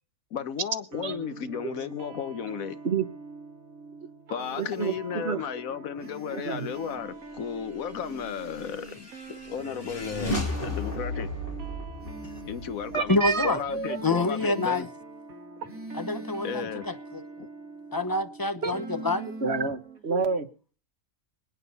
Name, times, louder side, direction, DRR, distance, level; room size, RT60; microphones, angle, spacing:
voice 1, 0.3-2.8 4.3-11.3 12.4-14.9 16.4-16.9 17.4-17.5, left 8 dB, 80° left, 1.4 m, -34 dB
sound 1, 0.9-20.0, right 3 dB, 90° right, 2.1 m, -45 dB
sound 2, 4.4-5.0 6.0-7.0 8.0-9.0 10.0-11.0 12.0-13.0 13.6-14.7 15.6-16.7 18.7-19.7, right 1 dB, 10° right, 2.4 m, -44 dB
voice 2, 4.6-5.4 6.3-6.7 12.9-14.0 18.6-18.7 19.4-20.5, right 5 dB, 50° right, 1.4 m, -29 dB
sound 3, 8.2-13.8, left 1 dB, 40° left, 3.7 m, -35 dB
voice 3, 13.1-13.6 14.0-14.9 15.9-17.2 17.9-19.3, left 2 dB, 20° left, 0.7 m, -27 dB
25.5 x 9.1 x 4.1 m
omnidirectional pair, 1.4 m